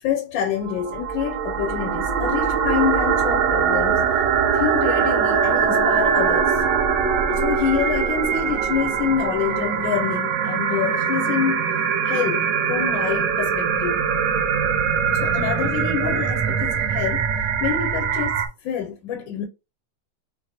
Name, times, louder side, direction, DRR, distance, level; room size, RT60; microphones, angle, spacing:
voice 1, 0.0-4.1 4.5-6.6 7.3-11.7 12.0-14.0 15.1-17.3 17.6-19.5, left 8 dB, 80° left, 1.4 m, -26 dB
sound 1, 0.6-18.5, right 7 dB, 70° right, 1.2 m, -22 dB
4.2 x 2.5 x 2.7 m
omnidirectional pair, 2.2 m